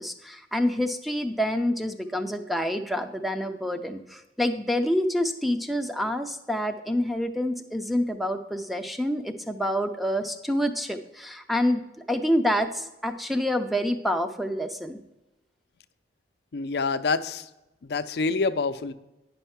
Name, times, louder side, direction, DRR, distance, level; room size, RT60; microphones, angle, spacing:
voice 1, 0.0-11.8 12.1-15.0, equal, ahead, 7 dB, 0.5 m, -27 dB
voice 2, 16.5-17.5 17.8-18.9, left 4 dB, 65° left, 11 dB, 0.5 m, -26 dB
9.8 x 5.5 x 5.7 m, 0.98 s
head